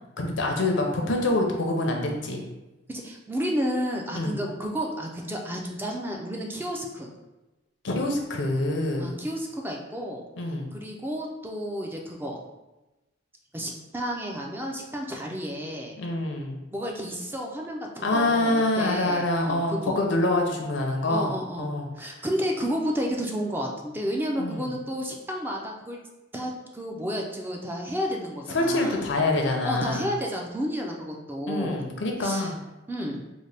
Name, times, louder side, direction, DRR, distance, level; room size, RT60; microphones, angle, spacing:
voice 1, 0.2-2.4 4.1-4.4 7.8-9.1 10.4-10.7 16.0-16.6 18.0-21.9 24.4-24.7 28.5-30.0 31.5-32.6, left 2 dB, 70° left, 2 dB, 0.6 m, -26 dB
voice 2, 2.9-7.1 9.0-10.2 10.7-12.4 13.5-15.9 16.7-20.0 21.1-21.7 22.0-26.0 26.3-29.0 29.6-31.8 32.2-32.5 32.9-33.2, equal, 10° right, 0 dB, 0.4 m, -31 dB
3.9 x 2.1 x 3.3 m, 1.0 s
head